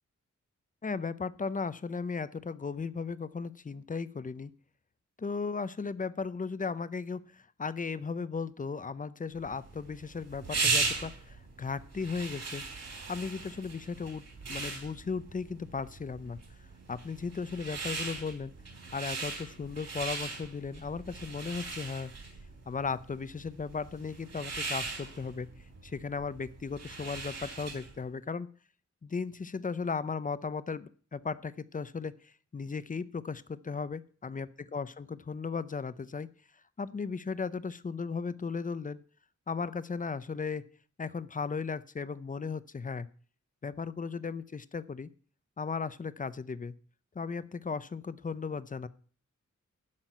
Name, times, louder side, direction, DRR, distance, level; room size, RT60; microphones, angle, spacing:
voice 1, 0.8-4.5 5.2-12.6 13.1-14.2 14.5-16.4 16.9-18.5 18.9-22.1 22.7-25.5 25.8-28.5 29.0-36.3 36.8-39.0 39.5-40.7 41.0-43.1 43.6-45.1 45.6-46.7 47.1-48.9, left 5 dB, 25° left, 16 dB, 0.6 m, -36 dB
sound 1, 9.5-28.0, right 4 dB, 60° right, 3.6 m, -38 dB
11.5 x 6.0 x 9.0 m, 0.44 s
wide cardioid pair, 155°, 30 cm